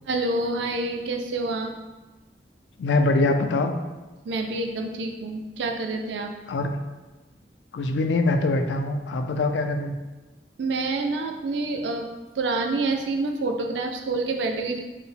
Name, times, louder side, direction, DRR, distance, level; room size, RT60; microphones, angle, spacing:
voice 1, 0.1-1.7 4.2-6.3 10.6-12.1 12.4-14.8, right 3 dB, 80° right, 4 dB, 0.4 m, -27 dB
voice 2, 2.8-3.7 6.5-6.7 7.7-10.0, left 2 dB, 85° left, 6 dB, 0.4 m, -23 dB
4.5 x 2.0 x 3.3 m, 1.2 s
head